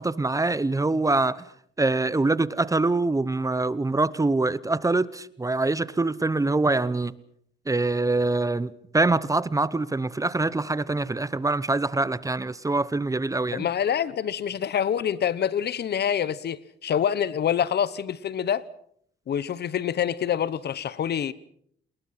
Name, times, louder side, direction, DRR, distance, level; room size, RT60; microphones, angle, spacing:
voice 1, 0.0-1.5 1.8-7.1 7.7-13.7, right 2 dB, 15° right, 0.8 m, -24 dB
voice 2, 13.5-18.6 19.3-21.3, left 9 dB, 55° left, 1.0 m, -26 dB
29.0 x 21.0 x 5.9 m
cardioid pair, 90°, 20 cm